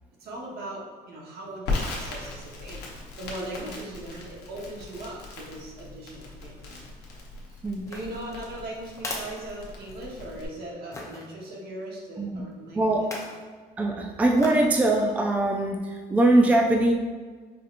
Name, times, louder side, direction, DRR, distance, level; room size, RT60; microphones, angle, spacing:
voice 1, 0.2-2.9 3.2-6.8 7.9-13.1, right 1 dB, 70° right, -3 dB, 1.1 m, -39 dB
Crackle, 1.7-10.5, left 3 dB, 75° left, 0.9 m, -38 dB
sound 1, 7.8-10.2 10.9-11.3 12.9-13.4 14.4-14.7 15.2-15.3, left 2 dB, 20° left, 0.7 m, -39 dB
voice 2, 12.7-13.0 13.8-16.9, right 2 dB, 10° right, 1 dB, 0.3 m, -22 dB
4.8 x 2.8 x 2.5 m, 1.5 s
cardioid pair, 110°, 17 cm